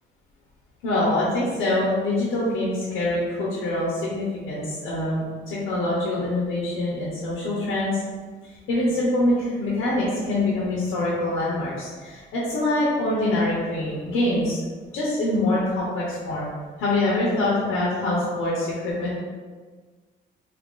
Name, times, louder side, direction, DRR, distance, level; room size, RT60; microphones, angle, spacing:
voice 1, 0.8-8.0 8.7-14.6 14.9-16.5 16.8-19.2, left 1 dB, 90° left, -6 dB, 0.8 m, -24 dB
2.7 x 2.5 x 3.6 m, 1.5 s
cardioid pair, 90°, 20 cm